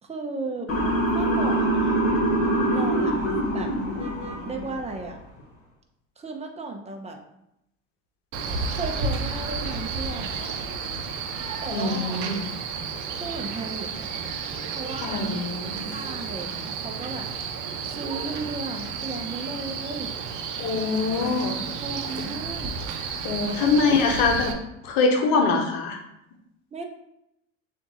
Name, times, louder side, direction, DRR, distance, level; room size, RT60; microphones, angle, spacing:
voice 1, 0.0-0.7 1.1-1.9 2.7-3.2 3.5-3.7 4.5-5.2 6.2-7.2 8.7-10.4 11.6-12.3 13.2-14.3 14.7-15.3 15.9-17.3 17.9-20.1 21.8-22.7 23.6-23.9 24.2-24.3 26.7-26.9, right 3 dB, 15° right, 4 dB, 0.8 m, -35 dB
Motor vehicle (road) / Siren, 0.7-4.8, right 1 dB, 35° left, 1.6 m, -24 dB
Male speech man speaking, 8.3-24.5, right 5 dB, 50° right, 0.8 m, -32 dB
voice 2, 11.7-12.5 15.0-15.8 20.6-21.6 22.2-22.3 23.2-24.6 24.8-26.0, left 4 dB, 60° left, 3 dB, 1.0 m, -23 dB
6.9 x 2.6 x 2.9 m, 0.81 s
hypercardioid pair, 75°, 38 cm